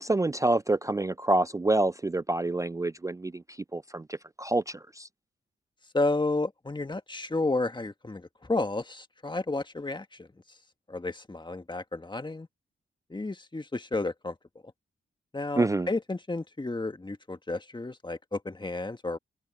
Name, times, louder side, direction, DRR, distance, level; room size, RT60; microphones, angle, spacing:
voice 1, 0.0-3.4 3.7-5.1 15.6-15.9, right 2 dB, 15° right, 0.4 m, -27 dB
voice 2, 5.9-10.3 10.9-12.5 13.1-14.3 15.3-19.2, left 2 dB, 20° left, 1.6 m, -31 dB
cardioid pair, 55°, 21 cm